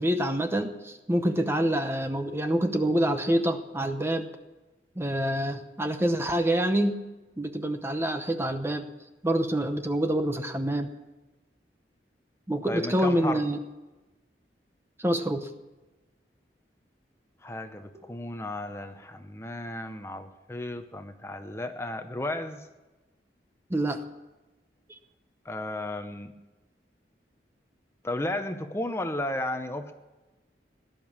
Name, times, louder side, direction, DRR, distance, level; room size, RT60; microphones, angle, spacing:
voice 1, 0.0-4.3 5.0-7.0 7.4-8.9 9.2-10.9 12.5-13.6 15.0-15.5 23.7-24.0, right 1 dB, 15° right, 7 dB, 0.8 m, -26 dB
voice 2, 12.7-13.4 17.4-22.7 25.4-26.3 28.0-29.9, left 1 dB, 15° left, 7 dB, 0.8 m, -34 dB
17.5 x 11.5 x 7.3 m, 1.1 s
head